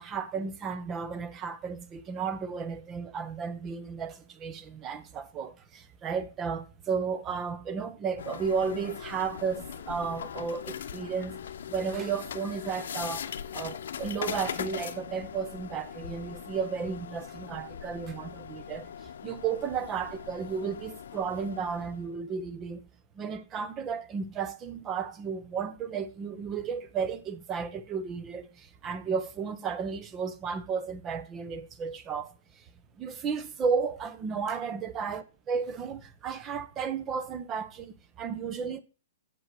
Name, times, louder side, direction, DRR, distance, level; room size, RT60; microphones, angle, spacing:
voice 1, 0.0-11.4 11.7-22.9 23.1-32.3 33.0-35.2 35.5-38.8, right 6 dB, 20° right, 0.8 m, -33 dB
sound 1, 8.2-22.1, left 8 dB, 70° left, 0.8 m, -40 dB
7.7 x 5.4 x 7.6 m
hypercardioid pair, 160°, 0 cm